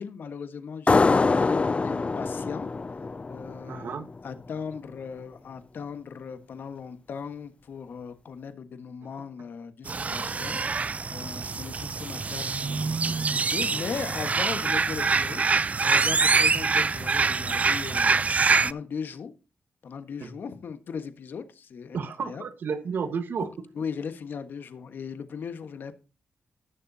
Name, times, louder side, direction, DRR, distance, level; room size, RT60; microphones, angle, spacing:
voice 1, 0.0-2.7 3.3-18.2 18.6-19.3 19.8-22.4 23.7-26.0, left 6 dB, 70° left, 1.4 m, -38 dB
sound 1, 0.9-4.2, left 3 dB, 35° left, 0.4 m, -24 dB
voice 2, 3.7-4.1 20.2-20.3 21.9-23.5, right 6 dB, 70° right, 1.5 m, -31 dB
sound 2, 9.9-18.7, right 4 dB, 45° right, 0.4 m, -25 dB
19.0 x 6.8 x 2.8 m
supercardioid pair, 50°, 4 cm